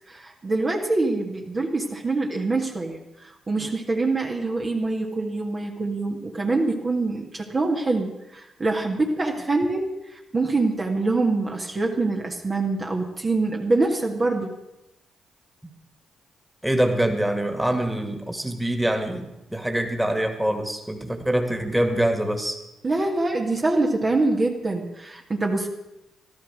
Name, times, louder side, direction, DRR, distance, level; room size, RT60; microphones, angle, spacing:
voice 1, 0.1-14.5 22.8-25.7, right 3 dB, 35° right, 1 dB, 1.8 m, -25 dB
voice 2, 16.6-22.6, right 1 dB, 10° right, 5 dB, 2.3 m, -24 dB
13.5 x 12.5 x 6.3 m, 0.94 s
hypercardioid pair, 45°, 0 cm